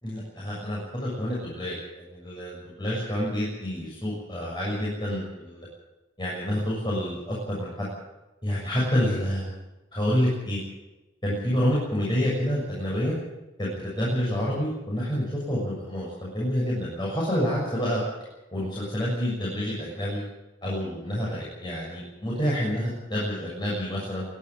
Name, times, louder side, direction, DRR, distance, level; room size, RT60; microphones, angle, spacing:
voice 1, 0.0-5.7 6.2-7.9 8.4-9.5 9.9-10.6 11.2-13.1 13.6-18.0 18.5-20.2 20.6-24.2, equal, 25° left, -5 dB, 6.8 m, -28 dB
23.0 x 12.0 x 9.7 m, 1.0 s
head